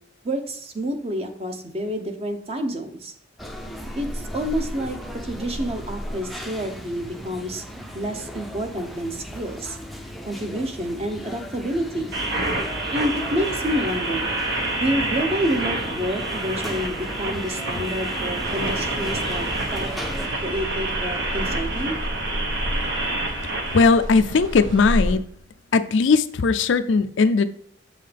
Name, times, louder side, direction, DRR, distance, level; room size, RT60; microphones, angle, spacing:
voice 1, 0.2-3.1 4.0-5.0 5.2-7.6 7.9-9.8 10.3-12.1 12.9-14.3 14.8-19.5 19.7-19.9 20.4-22.0, equal, 30° right, 0.9 m, -28 dB
sound 1, 3.4-20.3, equal, ahead, 0.6 m, -36 dB
sound 2, 12.1-23.8, right 2 dB, 60° right, 1.2 m, -28 dB
sound 3, 18.4-25.1, equal, 85° right, 1.4 m, -31 dB
voice 2, 23.7-25.2 25.7-27.4, left 4 dB, 75° left, 0.5 m, -18 dB
7.4 x 5.5 x 3.4 m
head